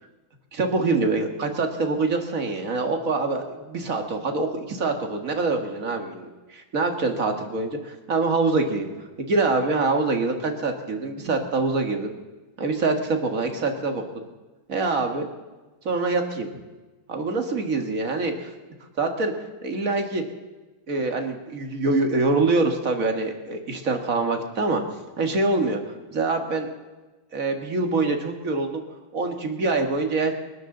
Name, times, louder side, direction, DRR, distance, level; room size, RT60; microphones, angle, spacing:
voice 1, 0.5-8.9 9.2-12.1 12.6-14.0 14.7-15.3 15.9-16.6 17.1-18.5 19.0-19.3 19.6-20.2 20.9-24.8 25.2-25.8 26.1-26.7 27.3-28.8 29.1-30.4, right 3 dB, 40° right, 4 dB, 2.0 m, -25 dB
29.0 x 12.5 x 3.9 m, 1.2 s
omnidirectional pair, 2.3 m